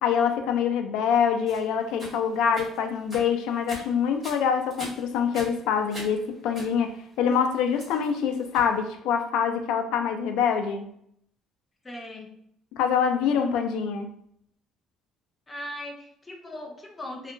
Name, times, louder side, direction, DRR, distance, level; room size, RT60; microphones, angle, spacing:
voice 1, 0.0-10.9 12.8-14.1, left 7 dB, 85° left, 6 dB, 0.4 m, -25 dB
sound 1, 1.5-8.8, right 1 dB, 15° right, 1.4 m, -43 dB
voice 2, 11.8-12.3 15.5-17.3, left 1 dB, 15° left, 1 dB, 0.5 m, -39 dB
2.8 x 2.2 x 2.5 m, 0.69 s
cardioid pair, 140°, 0 cm